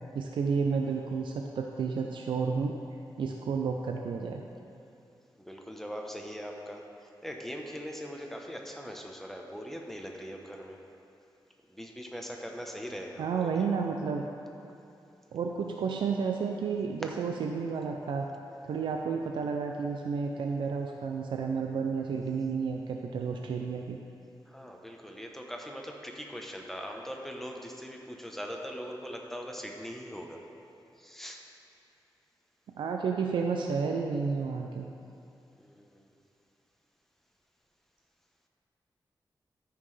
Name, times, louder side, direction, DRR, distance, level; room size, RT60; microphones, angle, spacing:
voice 1, 0.1-2.7 3.2-4.4 13.2-14.3 15.3-18.3 18.7-24.0 32.8-34.9, right 5 dB, 90° right, 2 dB, 0.5 m, -31 dB
voice 2, 5.4-6.8 7.2-10.8 11.7-13.7 24.5-30.4 31.0-31.4 35.6-36.1, equal, 5° left, 1 dB, 0.9 m, -41 dB
13.5 x 5.7 x 3.3 m, 2.7 s
wide cardioid pair, 95°, 8 cm